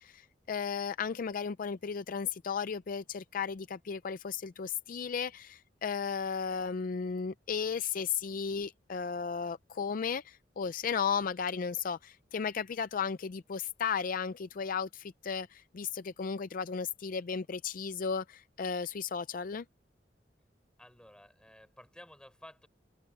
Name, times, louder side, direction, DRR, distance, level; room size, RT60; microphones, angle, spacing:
voice 1, 0.0-19.6, left 6 dB, 50° left, 0.4 m, -35 dB
voice 2, 20.8-22.7, left 1 dB, 5° left, 5.0 m, -54 dB
head